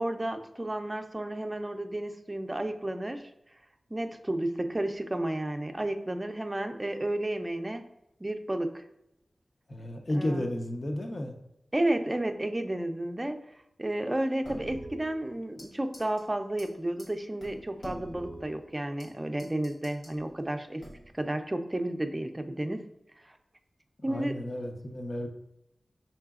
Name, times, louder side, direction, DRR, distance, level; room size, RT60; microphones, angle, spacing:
voice 1, 0.0-3.3 3.9-7.9 8.2-8.8 10.1-10.4 11.7-13.4 13.8-20.8 21.1-22.9 23.2-23.4 24.0-24.4, right 1 dB, 25° right, 6 dB, 0.5 m, -32 dB
voice 2, 9.7-11.3 24.1-25.3, left 1 dB, 55° left, 3 dB, 0.8 m, -32 dB
sound 1, 14.4-15.7 15.9-16.2 16.6-16.7 17.0-17.1 17.4-19.1 19.4-20.2 20.8-21.2, right 1 dB, 90° left, 1.3 m, -45 dB
5.6 x 3.8 x 2.4 m, 0.85 s
cardioid pair, 45°, 0 cm